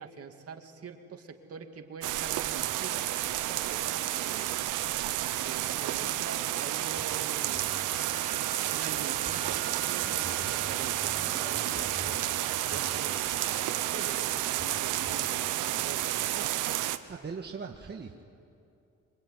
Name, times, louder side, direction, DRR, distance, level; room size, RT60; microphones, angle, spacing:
voice 1, 0.0-4.5 5.4-7.7 8.7-12.3 12.7-16.5, right 6 dB, 50° right, 4 dB, 2.7 m, -44 dB
sound 1, 2.0-17.0, right 14 dB, 90° right, 1.1 m, -31 dB
sound 2, 2.2-3.6 4.3-4.6 4.9-5.1 5.3-5.4 5.7-7.1 7.5-8.1 8.4-8.7 9.2-12.3 12.7-15.5, left 1 dB, 15° left, 3.7 m, -48 dB
Wind instrument woodwind instrument, 7.6-14.2, right 3 dB, 40° left, 4.3 m, -47 dB
voice 2, 17.1-18.2, right 5 dB, 35° right, 1 dB, 1.7 m, -39 dB
25.0 x 24.5 x 9.6 m, 2.6 s
cardioid pair, 90°, 30 cm